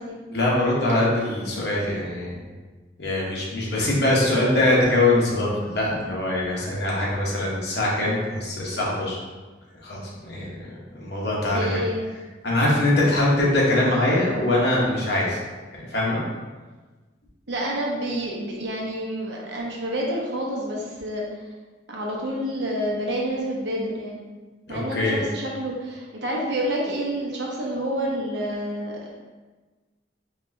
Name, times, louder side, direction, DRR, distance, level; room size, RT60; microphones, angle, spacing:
voice 1, 0.3-2.4 3.0-9.2 9.8-11.8 12.4-15.4 15.9-16.2 24.7-25.2, left 1 dB, 65° left, -5 dB, 1.1 m, -23 dB
voice 2, 11.5-12.1 17.5-21.2 21.9-24.2 24.7-29.2, right 1 dB, 80° right, -3 dB, 0.9 m, -28 dB
4.4 x 3.2 x 2.7 m, 1.3 s
head